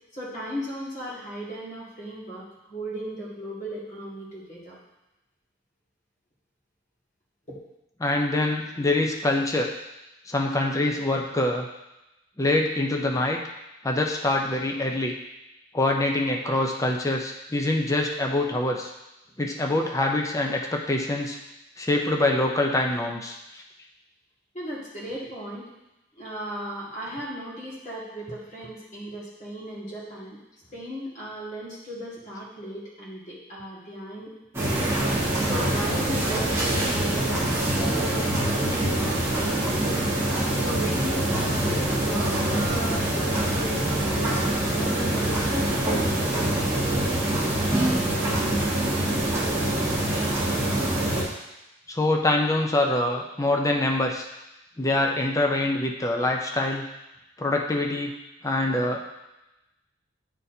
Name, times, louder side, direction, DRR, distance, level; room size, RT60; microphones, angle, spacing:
voice 1, 0.1-4.8 7.5-7.6 24.5-25.7 26.1-30.4 30.7-36.5 36.8-39.2 39.6-40.3 40.6-44.3 44.7-48.6, equal, 40° left, -7 dB, 1.8 m, -37 dB
voice 2, 8.0-9.7 10.3-11.7 12.4-13.4 13.8-15.1 15.7-18.9 19.4-21.4 21.8-23.4 51.9-54.3 54.8-56.8 57.4-58.1 58.4-59.0, left 2 dB, 15° left, 1 dB, 0.5 m, -24 dB
sound 1, 34.5-51.2, right 1 dB, 15° right, 1.4 m, -25 dB
8.9 x 4.1 x 2.7 m, 0.95 s
head